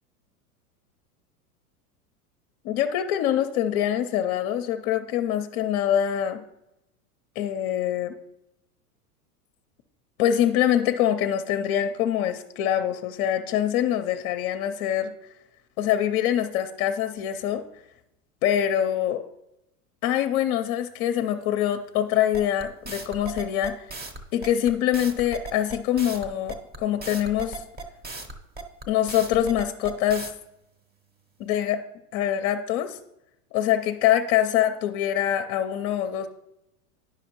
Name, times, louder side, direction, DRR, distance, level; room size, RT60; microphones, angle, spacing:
voice 1, 2.6-6.4 7.4-8.2 10.2-15.1 15.8-17.6 18.4-19.2 20.0-24.0 24.3-27.6 28.9-30.3 31.4-31.8 32.1-33.0 33.5-36.3, left 10 dB, 45° left, 7 dB, 0.6 m, -24 dB
sound 1, 22.3-30.3, right 2 dB, 20° right, 0.8 m, -37 dB
9.8 x 5.9 x 3.0 m, 0.86 s
hypercardioid pair, 95°, 45 cm